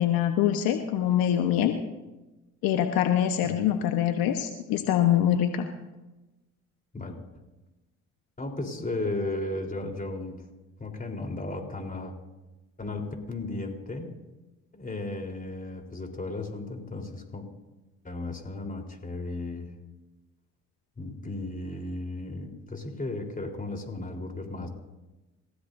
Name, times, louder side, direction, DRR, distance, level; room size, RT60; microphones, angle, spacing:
voice 1, 0.0-1.7 2.6-5.7, left 10 dB, 70° left, 6 dB, 1.3 m, -24 dB
voice 2, 8.4-10.5 10.8-12.1 12.8-14.1 14.7-17.5 18.0-19.7 21.0-24.7, left 2 dB, 20° left, 2 dB, 4.0 m, -35 dB
29.0 x 16.0 x 2.7 m, 1.1 s
supercardioid pair, 70°, 36 cm